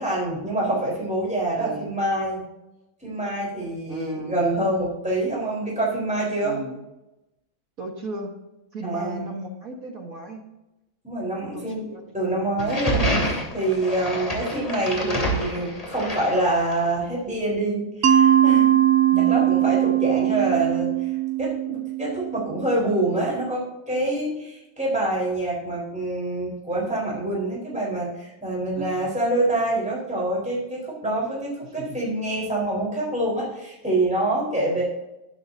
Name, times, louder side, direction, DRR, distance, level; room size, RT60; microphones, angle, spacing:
voice 1, 0.0-2.4 3.0-6.6 8.8-9.2 11.0-11.9 12.1-18.7 19.3-21.1 21.4-34.8, right 1 dB, 5° right, -4 dB, 4.0 m, -26 dB
voice 2, 1.6-1.9 3.9-4.4 6.4-6.8 7.8-8.3 8.7-10.4 11.4-12.8 19.1-19.4 28.8-29.1 31.8-32.0, right 2 dB, 45° right, 1 dB, 1.6 m, -36 dB
sound 1, 12.6-16.9, equal, 15° left, 3.0 m, -27 dB
Mallet percussion, 18.0-22.8, right 11 dB, 90° right, 0.7 m, -20 dB
12.5 x 10.5 x 2.7 m, 0.96 s
omnidirectional pair, 2.3 m